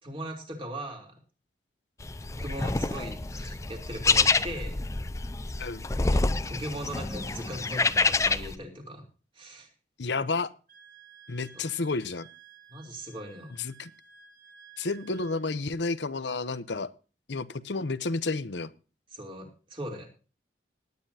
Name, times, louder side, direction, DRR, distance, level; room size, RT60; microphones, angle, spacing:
voice 1, 0.0-1.2 2.2-4.8 6.1-9.0 9.3-9.7 11.5-11.7 12.7-13.5 19.1-20.1, right 1 dB, 30° right, 2 dB, 3.5 m, -39 dB
sound 1, 2.0-8.5, left 3 dB, 15° left, 0.5 m, -27 dB
voice 2, 10.0-10.5 11.3-12.3 13.6-13.9 14.8-16.9 17.3-18.7, left 3 dB, 85° left, 14 dB, 0.9 m, -31 dB
Wind instrument woodwind instrument, 10.7-15.4, right 7 dB, 50° right, 1.3 m, -54 dB
19.0 x 9.7 x 2.8 m, 0.34 s
head